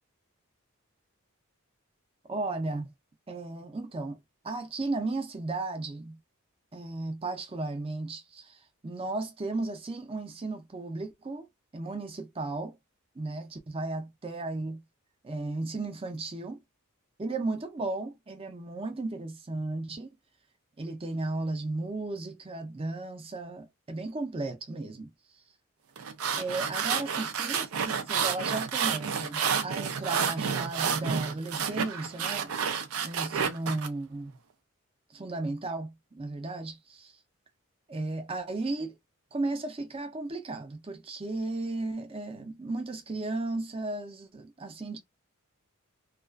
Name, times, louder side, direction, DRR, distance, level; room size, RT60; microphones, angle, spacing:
voice 1, 2.3-2.9 3.3-4.2 4.4-6.2 6.7-11.5 11.7-12.8 13.2-14.8 15.2-16.6 17.2-20.1 20.8-25.1 26.4-32.5 33.0-34.4 35.1-37.1 37.9-38.9 39.3-45.0, right 2 dB, 25° right, 0.5 m, -35 dB
sound 1, 26.0-33.9, right 7 dB, 80° right, 0.4 m, -30 dB
2.3 x 2.3 x 2.3 m
head